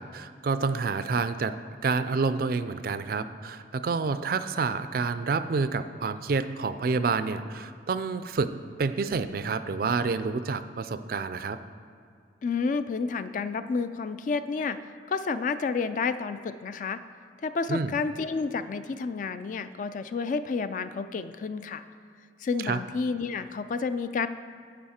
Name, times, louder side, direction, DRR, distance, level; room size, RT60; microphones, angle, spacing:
voice 1, 0.0-1.5 1.8-8.5 8.8-11.6 17.7-17.9 22.6-22.8, right 4 dB, 55° right, 12 dB, 0.4 m, -28 dB
voice 2, 12.4-14.8 15.1-17.0 17.4-21.8 22.4-24.3, left 4 dB, 45° left, 11 dB, 0.3 m, -30 dB
10.5 x 7.0 x 4.3 m, 2.4 s
head